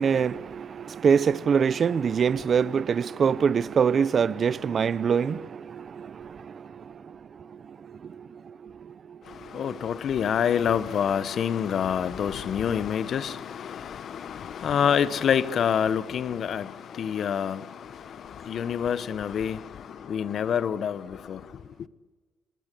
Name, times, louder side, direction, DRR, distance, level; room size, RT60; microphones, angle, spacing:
voice 1, 0.0-9.8, right 6 dB, 50° right, 0.8 m, -26 dB
voice 2, 9.2-21.6, left 8 dB, 60° left, 1.0 m, -27 dB
26.5 x 20.0 x 8.4 m
cardioid pair, 90°, 0 cm